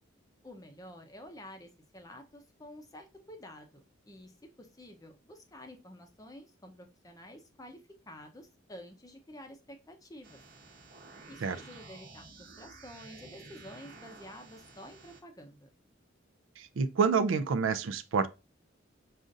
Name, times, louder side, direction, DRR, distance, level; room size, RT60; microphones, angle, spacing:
voice 1, 0.4-7.8 8.1-10.4 11.3-15.7, left 1 dB, 20° left, 0.6 m, -50 dB
sound 1, 10.2-15.2, right 3 dB, 50° right, 0.9 m, -52 dB
voice 2, 16.6-18.3, right 5 dB, 75° right, 0.4 m, -28 dB
5.1 x 2.4 x 2.5 m
head